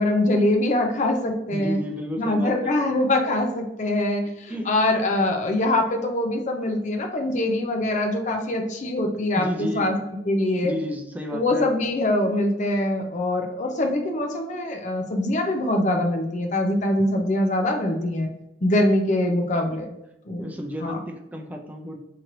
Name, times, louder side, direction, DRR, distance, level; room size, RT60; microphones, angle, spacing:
voice 1, 0.0-1.8 2.2-10.0 10.3-10.7 11.3-18.3 18.6-19.9 20.3-20.5 20.8-21.0, left 1 dB, 45° left, 3 dB, 0.6 m, -23 dB
voice 2, 1.5-2.7 4.5-4.7 9.3-9.9 10.6-11.7 20.4-22.0, equal, 10° right, 2 dB, 0.5 m, -32 dB
3.1 x 2.9 x 3.8 m, 0.87 s
head